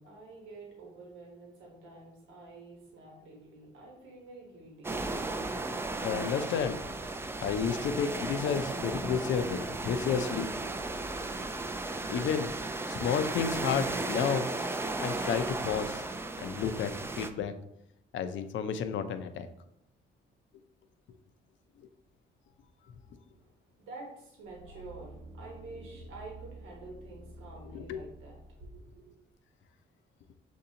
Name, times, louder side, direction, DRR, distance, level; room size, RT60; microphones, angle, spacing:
voice 1, 0.0-4.9 5.4-5.6 23.9-29.1, right 2 dB, 90° right, -2 dB, 1.2 m, -48 dB
sound 1, 4.8-17.3, right 2 dB, 10° right, 0.3 m, -35 dB
voice 2, 6.0-6.8 7.4-10.5 12.1-12.5 12.9-14.4 15.0-16.0 16.4-16.9 17.2-17.5 18.1-19.5 27.7-28.0, left 7 dB, 70° left, 9 dB, 0.5 m, -31 dB
sound 2, 24.5-28.8 29.3-29.4, right 2 dB, 55° right, 0.7 m, -49 dB
6.6 x 2.6 x 2.8 m, 0.79 s
cardioid pair, 90°, 20 cm